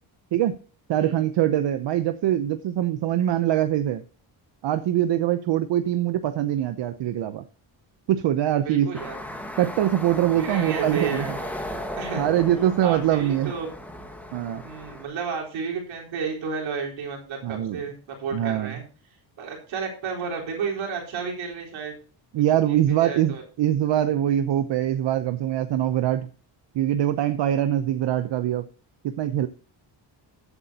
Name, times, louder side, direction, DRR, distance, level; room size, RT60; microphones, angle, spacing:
voice 1, 0.9-4.0 4.6-7.5 8.1-8.9 9.6-11.2 12.2-13.5 14.3-14.6 17.4-17.8 18.3-18.7 22.3-26.3 26.7-28.7 29.0-29.5, right 11 dB, 65° right, 10 dB, 0.8 m, -23 dB
voice 2, 8.6-9.2 10.4-11.5 12.0-12.3 12.8-13.7 14.6-18.8 19.4-21.9 22.7-23.4, right 5 dB, 85° right, 0 dB, 4.2 m, -32 dB
sound 1, 8.9-15.0, equal, 5° left, 1.6 m, -36 dB
14.0 x 8.3 x 2.9 m, 0.39 s
cardioid pair, 130°, 46 cm